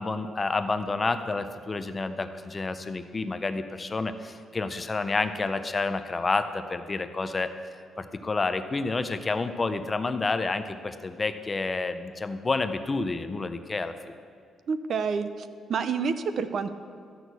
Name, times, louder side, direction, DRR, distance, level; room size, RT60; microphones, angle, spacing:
voice 1, 0.0-7.5 8.0-13.9, left 3 dB, 20° left, 10 dB, 0.5 m, -29 dB
voice 2, 14.7-16.7, right 5 dB, 45° right, 11 dB, 0.5 m, -29 dB
12.5 x 6.2 x 8.0 m, 2.2 s
cardioid pair, 165°, 0 cm